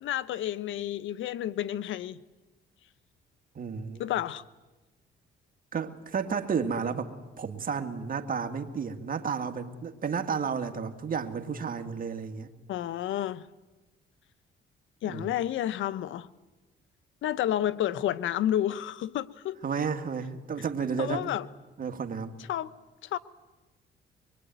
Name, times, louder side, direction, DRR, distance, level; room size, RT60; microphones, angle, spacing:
voice 1, 0.0-2.2 4.0-4.4 12.7-13.4 15.0-16.3 17.2-19.6 21.0-21.4 22.5-22.7 23.0-23.2, left 11 dB, 80° left, 1.0 m, -30 dB
voice 2, 3.6-4.0 5.7-12.5 15.1-15.3 19.6-21.3 21.8-22.3, right 6 dB, 45° right, 2.2 m, -32 dB
24.0 x 23.0 x 9.3 m
cardioid pair, 90°, 20 cm